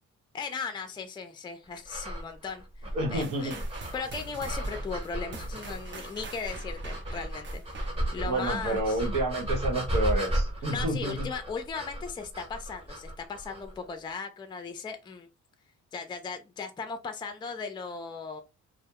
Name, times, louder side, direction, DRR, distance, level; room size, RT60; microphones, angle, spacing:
voice 1, 0.3-3.6 3.9-9.0 10.7-15.3 15.9-18.4, left 5 dB, 15° left, 7 dB, 0.4 m, -37 dB
sound 1, 1.9-13.8, right 1 dB, 20° right, 0.9 m, -34 dB
voice 2, 2.9-3.6 8.2-11.3, right 1 dB, 85° right, 0 dB, 0.9 m, -29 dB
sound 2, 3.2-8.3, right 2 dB, 40° right, 0.6 m, -43 dB
2.2 x 2.1 x 2.8 m, 0.26 s
cardioid pair, 90°, 30 cm